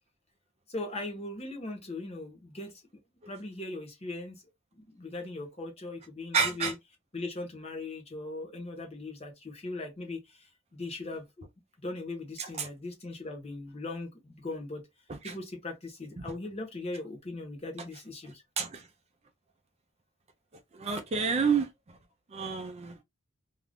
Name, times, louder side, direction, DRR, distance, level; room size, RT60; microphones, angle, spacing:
voice 1, 0.7-2.8 3.3-4.4 4.9-6.7 7.1-11.5 11.8-14.9 15.2-18.4, left 2 dB, 30° left, 0.9 m, -39 dB
voice 2, 6.3-6.7 12.4-12.7 15.2-15.3 18.6-18.8 20.7-21.7 22.3-23.0, right 5 dB, 30° right, 0.4 m, -29 dB
2.5 x 2.3 x 3.4 m
head